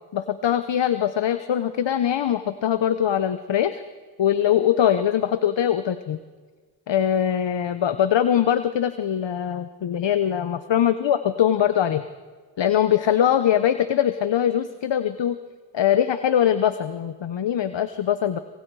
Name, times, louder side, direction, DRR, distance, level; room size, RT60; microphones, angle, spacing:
voice 1, 0.1-3.8 4.2-6.2 6.9-12.0 12.6-15.4 15.7-18.4, left 10 dB, 80° left, 11 dB, 1.0 m, -22 dB
27.0 x 27.0 x 4.8 m, 1.4 s
cardioid pair, 40°, 43 cm